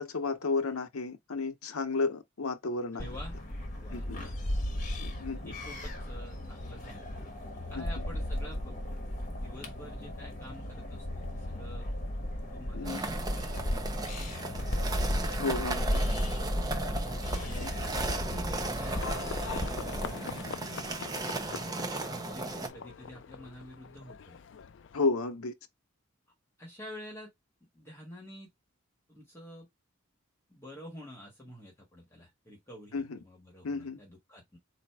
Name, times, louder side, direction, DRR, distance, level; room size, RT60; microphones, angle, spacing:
voice 1, 0.0-3.1 3.9-4.2 5.0-5.6 7.8-7.9 12.7-13.0 15.4-15.9 17.6-17.7 24.9-25.5 32.9-33.2 33.6-34.0, left 3 dB, 80° left, 0.7 m, -32 dB
voice 2, 2.9-3.4 3.8-4.3 5.2-7.1 7.7-8.8 9.3-11.9 12.4-13.1 13.7-14.8 15.7-16.2 17.1-19.0 22.1-24.4 26.6-27.3 27.7-28.5 29.1-29.7 30.5-34.6, equal, 10° left, 1.6 m, -49 dB
sound 1, 3.0-20.2, left 1 dB, 35° left, 1.1 m, -35 dB
sound 2, 12.8-22.7, right 2 dB, 15° right, 0.6 m, -36 dB
Livestock farm animals working animals, 18.9-25.0, left 6 dB, 55° left, 0.4 m, -43 dB
4.1 x 2.7 x 4.6 m
head